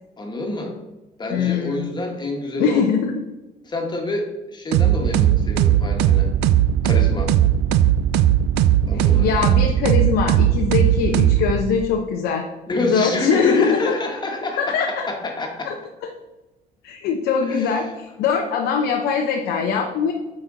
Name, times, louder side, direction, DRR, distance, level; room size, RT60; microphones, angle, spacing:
voice 1, 0.2-0.8 1.2-2.8 3.6-6.3 6.8-7.3 8.8-9.4 12.7-15.7 17.4-17.7, left 2 dB, 25° left, 2 dB, 1.5 m, -27 dB
voice 2, 1.3-1.9 2.6-3.1 8.9-12.4 12.9-13.9 14.6-15.1 15.7-15.8 16.8-20.1, left 6 dB, 85° left, 2 dB, 0.8 m, -22 dB
sound 1, 4.7-11.9, right 11 dB, 85° right, 0.4 m, -18 dB
8.7 x 4.3 x 3.9 m, 1.1 s
cardioid pair, 110°, 17 cm